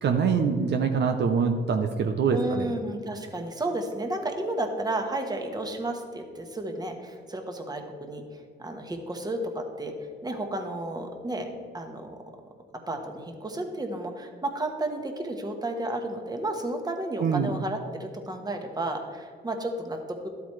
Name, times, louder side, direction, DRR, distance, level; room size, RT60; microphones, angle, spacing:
voice 1, 0.0-2.7 17.2-17.5, right 5 dB, 60° right, 5 dB, 0.7 m, -24 dB
voice 2, 2.3-11.5 11.7-12.2 12.9-20.3, right 1 dB, 20° right, 4 dB, 1.3 m, -32 dB
12.0 x 8.1 x 3.2 m, 2.1 s
cardioid pair, 90°, 20 cm